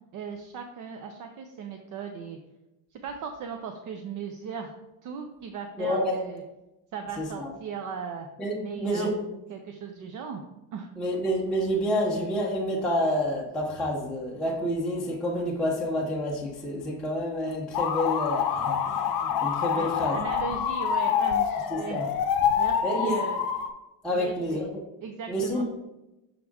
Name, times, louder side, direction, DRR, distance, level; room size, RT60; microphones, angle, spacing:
voice 1, 0.1-2.4 2.9-4.8 5.0-6.4 6.9-8.3 8.6-10.4 10.7-10.9 19.7-22.0 22.6-23.4 24.1-24.7 25.0-25.6, right 6 dB, 45° right, 4 dB, 0.5 m, -37 dB
voice 2, 5.8-6.2 7.2-7.5 8.4-9.1 11.0-20.2 21.7-22.1 22.8-23.1 24.0-24.8 25.3-25.6, equal, ahead, -4 dB, 0.6 m, -28 dB
sound 1, 17.7-23.7, left 8 dB, 50° left, 0.6 m, -26 dB
6.3 x 4.8 x 3.5 m, 0.97 s
cardioid pair, 165°, 45 cm